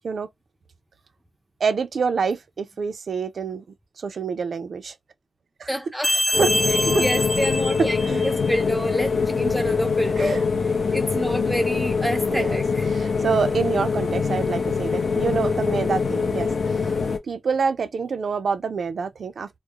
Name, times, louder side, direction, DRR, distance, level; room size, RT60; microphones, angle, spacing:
voice 1, 1.6-3.6 4.0-4.9 5.6-5.7 6.1-7.0 10.2-10.4 12.3-12.6 12.9-16.5 16.8-17.0 17.3-19.6, right 5 dB, 80° right, 0.3 m, -26 dB
voice 2, 5.7-6.1 6.7-12.9, equal, 5° right, 0.4 m, -28 dB
sound 1, 6.0-8.6, left 1 dB, 20° left, 0.8 m, -25 dB
sound 2, 6.3-17.2, left 5 dB, 75° left, 0.5 m, -24 dB
2.3 x 2.0 x 2.8 m
wide cardioid pair, 100°, 0 cm